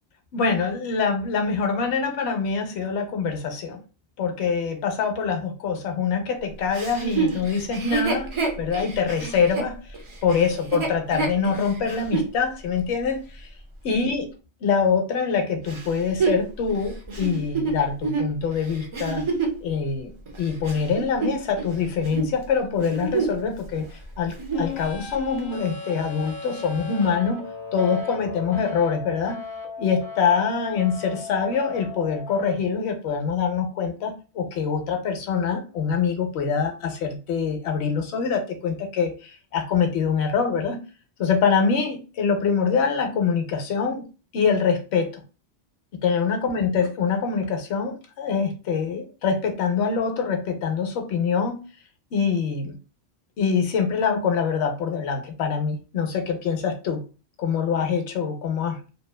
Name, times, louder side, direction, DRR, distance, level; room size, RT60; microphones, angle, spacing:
voice 1, 0.3-3.8 4.2-8.3 8.6-9.8 10.2-13.5 13.8-14.3 14.6-19.2 19.6-20.1 20.4-23.9 24.2-27.4 27.7-29.4 29.8-40.8 41.2-44.0 44.3-45.2 46.0-51.6 52.1-52.8 53.4-57.0 57.4-58.8, left 6 dB, 85° left, 5 dB, 0.9 m, -24 dB
Chuckle chortle, 6.7-12.3 12.9-13.0 15.7-19.6 20.3-21.7 22.0-22.3 22.7-23.5 23.8-23.9 24.3-24.7 25.4-25.5, right 4 dB, 40° right, 0.5 m, -28 dB
sound 1, 24.5-32.5, left 5 dB, 55° left, 0.7 m, -36 dB
2.7 x 2.1 x 2.2 m, 0.32 s
omnidirectional pair, 1.1 m